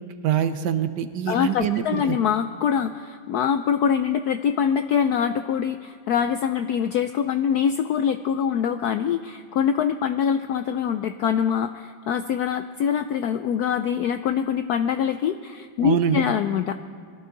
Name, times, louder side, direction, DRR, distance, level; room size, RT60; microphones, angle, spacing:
voice 1, 0.2-2.2 15.8-16.2, right 9 dB, 70° right, 10 dB, 1.2 m, -24 dB
voice 2, 1.3-16.7, left 8 dB, 80° left, 9 dB, 0.8 m, -24 dB
22.0 x 14.0 x 3.9 m, 2.3 s
omnidirectional pair, 2.2 m